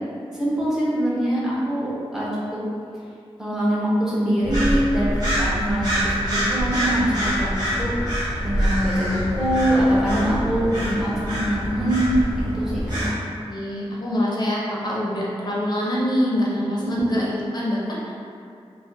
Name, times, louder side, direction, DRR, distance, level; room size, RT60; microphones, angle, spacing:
voice 1, 0.3-2.6 3.4-7.5 7.8-7.9 8.4-12.2 12.5-13.1 16.8-17.1, right 1 dB, 5° right, -9 dB, 0.8 m, -23 dB
sound 1, 4.4-13.1, equal, 40° right, 1.1 m, -25 dB
voice 2, 13.5-18.1, left 1 dB, 45° left, -5 dB, 0.6 m, -25 dB
3.4 x 2.1 x 2.6 m, 2.5 s
wide cardioid pair, 100°, 10 cm